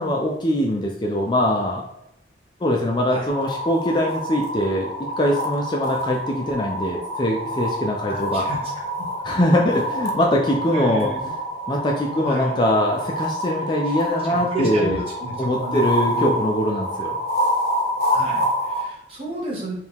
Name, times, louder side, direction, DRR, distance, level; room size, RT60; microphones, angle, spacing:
voice 1, 0.0-1.8 2.6-4.9 5.2-8.5 9.2-11.1 11.7-15.0 15.4-17.2, left 1 dB, 25° left, -1 dB, 0.4 m, -22 dB
sound 1, 3.3-18.8, equal, 55° left, 0.7 m, -27 dB
voice 2, 8.1-8.6 9.0-9.1 10.7-11.3 12.0-12.6 13.8-16.4 18.1-19.7, right 1 dB, 30° right, -4 dB, 1.2 m, -32 dB
4.4 x 2.3 x 3.5 m, 0.81 s
head